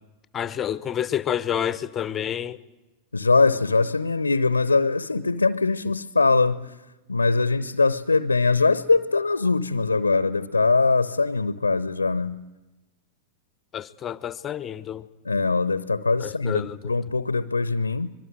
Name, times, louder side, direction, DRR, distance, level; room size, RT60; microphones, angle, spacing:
voice 1, 0.3-2.6 13.7-15.1 16.2-16.9, left 10 dB, 25° left, 0.9 m, -29 dB
voice 2, 3.1-6.7 7.1-12.4 15.2-18.1, left 3 dB, 80° left, 0.8 m, -22 dB
25.0 x 22.5 x 7.9 m
figure-of-eight pair, 90°, 0 cm